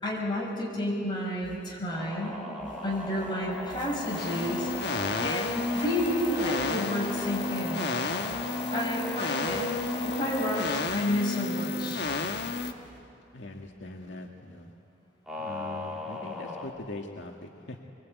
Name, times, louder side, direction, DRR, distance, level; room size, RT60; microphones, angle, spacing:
voice 1, 0.0-2.4 2.8-7.9 8.7-9.7 10.0-12.1, left 1 dB, 25° left, -3 dB, 6.3 m, -31 dB
sound 1, 1.4-2.3 2.6-9.2 9.5-11.8 12.0-13.0, right 2 dB, 45° right, 7.9 m, -53 dB
sound 2, 1.9-10.6 15.3-16.7, left 1 dB, ahead, 3.1 m, -39 dB
sound 3, 3.8-12.7, left 3 dB, 60° left, 1.4 m, -32 dB
voice 2, 13.3-14.7 15.4-17.8, left 2 dB, 75° left, 1 dB, 1.9 m, -41 dB
24.5 x 23.5 x 9.2 m, 2.5 s
head